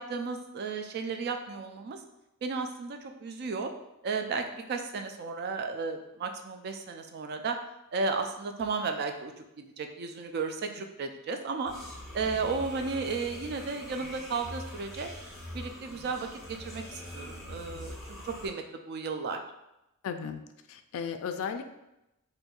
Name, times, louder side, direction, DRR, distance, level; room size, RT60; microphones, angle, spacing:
voice 1, 0.0-2.0 2.4-3.7 4.0-7.6 7.9-11.7 12.1-15.1 15.5-19.4, right 4 dB, 45° right, 6 dB, 0.3 m, -34 dB
sound 1, 11.7-18.5, left 1 dB, ahead, 0.9 m, -43 dB
voice 2, 20.0-20.4 20.7-21.6, left 6 dB, 65° left, 8 dB, 0.3 m, -35 dB
4.2 x 2.6 x 2.3 m, 0.90 s
head